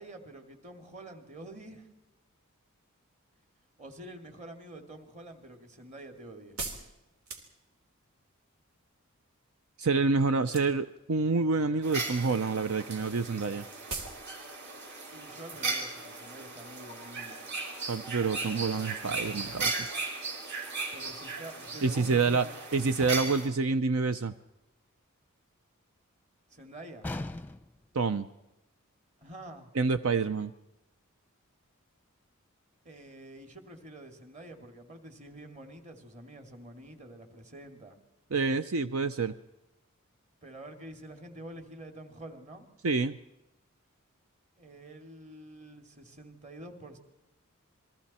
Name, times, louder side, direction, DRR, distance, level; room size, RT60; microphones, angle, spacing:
voice 1, 0.0-1.9 3.8-6.6 15.1-17.4 20.9-22.5 26.5-27.1 29.2-29.7 32.8-38.0 40.4-42.7 44.6-47.0, right 1 dB, 35° right, 5 dB, 2.6 m, -47 dB
sound 1, 5.0-8.0 10.4-11.0 11.3-11.9 12.2-12.4 12.6-12.7 12.9-13.0 13.4-13.5 13.9-14.2 14.5-14.6, right 3 dB, 90° right, 3.4 m, -40 dB
voice 2, 9.8-13.6 17.9-19.9 21.8-22.5 22.7-24.3 27.9-28.3 29.7-30.5 38.3-39.3 42.8-43.2, right 4 dB, 70° right, 11 dB, 0.7 m, -27 dB
sound 2, 11.8-23.5, right 3 dB, 55° right, 4.9 m, -37 dB
sound 3, 23.0-23.6 27.0-27.9, left 2 dB, 10° left, 0.7 m, -39 dB
28.5 x 22.5 x 4.3 m, 0.96 s
head